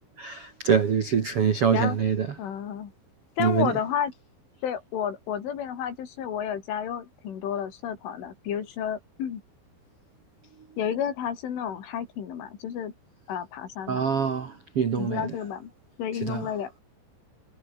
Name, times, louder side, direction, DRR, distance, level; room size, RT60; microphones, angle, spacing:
voice 1, 0.2-2.3 3.4-3.7 13.9-15.3 16.2-16.5, right 7 dB, 60° right, 1.5 m, -24 dB
voice 2, 2.4-2.9 3.4-4.1 4.6-9.4 10.8-12.9 13.3-14.0 15.0-15.7 16.0-16.8, left 8 dB, 75° left, 5.9 m, -31 dB
omnidirectional pair, 5.6 m